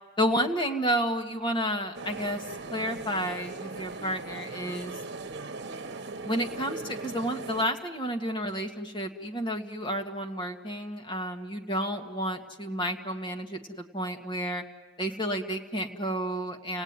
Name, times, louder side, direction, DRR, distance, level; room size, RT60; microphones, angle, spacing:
voice 1, 0.2-2.4 2.7-4.9 6.2-14.6 15.0-16.8, equal, 25° left, 4 dB, 1.8 m, -31 dB
sound 1, 1.9-7.7, right 3 dB, 55° right, 1.2 m, -39 dB
30.0 x 18.0 x 9.7 m, 1.4 s
head